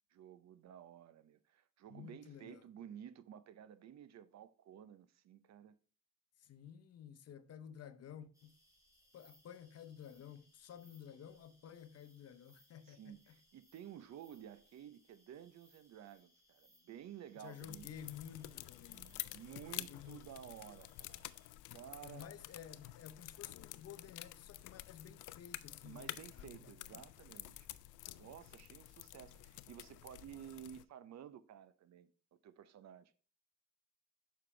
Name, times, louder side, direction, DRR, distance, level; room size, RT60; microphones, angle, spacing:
voice 1, 0.1-5.7 12.9-17.9 18.9-21.3 21.7-22.3 25.8-27.7 28.2-32.1 32.4-33.2, right 10 dB, 60° right, 0.7 m, -53 dB
voice 2, 1.9-2.6 6.4-8.6 9.1-13.3 17.4-19.3 19.7-20.2 22.0-27.0, left 9 dB, 55° left, 0.8 m, -53 dB
sound 1, 8.3-21.5, equal, 10° right, 3.1 m, -71 dB
sound 2, 17.6-30.8, left 16 dB, 85° left, 0.4 m, -50 dB
sound 3, 21.5-29.6, right 3 dB, 85° right, 3.4 m, -73 dB
6.8 x 5.7 x 3.2 m
cardioid pair, 90°, 30 cm